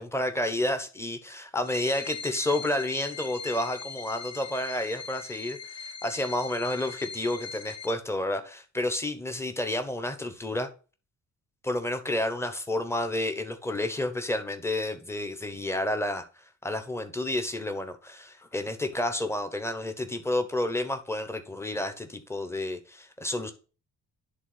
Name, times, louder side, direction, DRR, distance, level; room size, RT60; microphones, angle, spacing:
voice 1, 0.0-10.7 11.6-23.5, left 1 dB, 10° left, 1.1 m, -30 dB
sound 1, 1.6-7.9, left 6 dB, 50° left, 0.9 m, -41 dB
11.0 x 3.6 x 4.0 m
cardioid pair, 145°, 33 cm